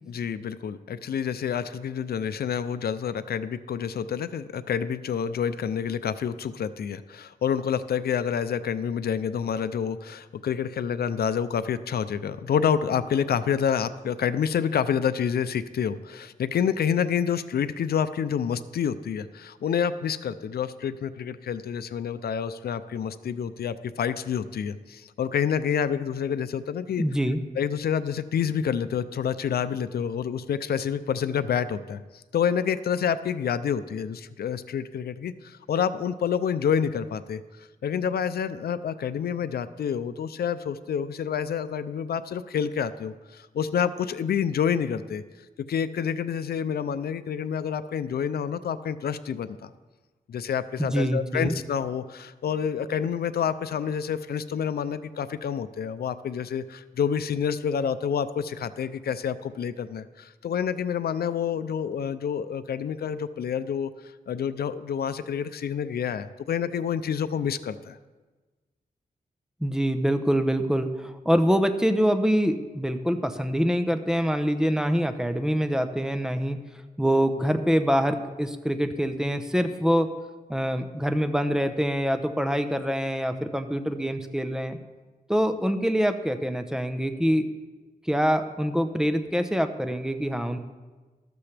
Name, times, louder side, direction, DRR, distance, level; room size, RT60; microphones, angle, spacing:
voice 1, 0.1-27.0 27.6-32.0 32.3-37.4 37.8-45.2 45.7-49.7 50.3-63.9 64.3-68.0, left 7 dB, 90° left, 13 dB, 0.5 m, -28 dB
voice 2, 27.0-27.4 50.8-51.5 69.6-76.6 77.0-80.1 80.5-84.8 85.3-87.5 88.1-90.6, equal, 5° right, 7 dB, 0.9 m, -25 dB
13.5 x 13.0 x 3.4 m, 1.3 s
wide cardioid pair, 80°, 16 cm